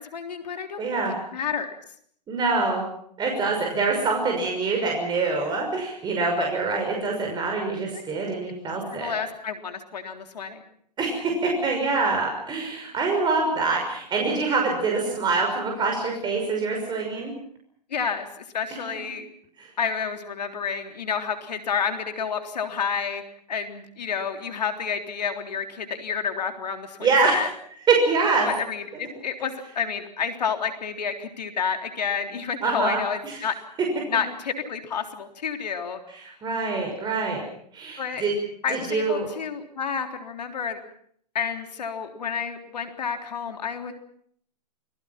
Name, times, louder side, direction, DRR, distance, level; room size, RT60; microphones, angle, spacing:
voice 1, 0.0-0.8 1.3-1.7 7.9-8.0 8.7-10.6 17.9-19.2 19.8-23.2 23.5-27.0 27.2-27.5 28.5-33.5 34.1-36.0 38.0-38.2 38.6-40.8 41.3-43.9, left 6 dB, 75° left, 5 dB, 3.7 m, -30 dB
voice 2, 0.8-1.1 2.3-2.9 3.2-9.1 11.0-17.3 19.6-19.7 27.0-27.4 27.9-28.5 32.6-33.4 36.1-37.4 37.7-38.3 38.7-39.3, right 4 dB, 20° right, 1 dB, 6.0 m, -25 dB
29.5 x 20.5 x 5.9 m, 0.64 s
hypercardioid pair, 120°, 21 cm